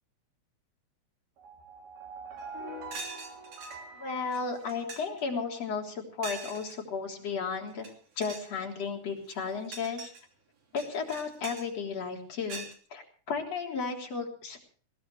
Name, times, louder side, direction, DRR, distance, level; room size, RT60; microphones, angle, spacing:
sound 1, 1.4-5.3, right 2 dB, 85° right, 5.4 m, -45 dB
sound 2, 2.4-2.5 2.9-3.8 4.3-4.4 4.7-5.2 6.2-6.8 7.7-7.9 8.2-8.5 9.2-10.2 10.8-11.7 12.5-12.8, right 4 dB, 55° right, 4.3 m, -42 dB
voice 1, 3.9-10.1 10.7-14.6, left 5 dB, 45° left, 0 dB, 4.6 m, -34 dB
21.0 x 19.0 x 3.4 m, 0.43 s
omnidirectional pair, 4.2 m